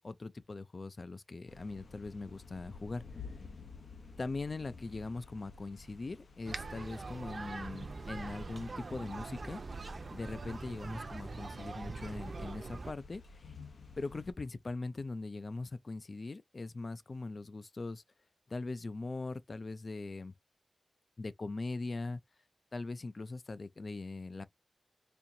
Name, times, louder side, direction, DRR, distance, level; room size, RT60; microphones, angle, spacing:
voice 1, 0.0-3.3 4.2-9.6 10.1-13.6 14.0-18.0 18.5-20.3 21.2-22.2 22.7-24.4, left 3 dB, 45° left, 0.4 m, -41 dB
sound 1, 1.5-14.3, left 4 dB, 85° left, 0.8 m, -53 dB
sound 2, 6.5-12.9, right 3 dB, 55° right, 0.6 m, -43 dB
4.3 x 2.7 x 2.6 m
wide cardioid pair, 115°, 0 cm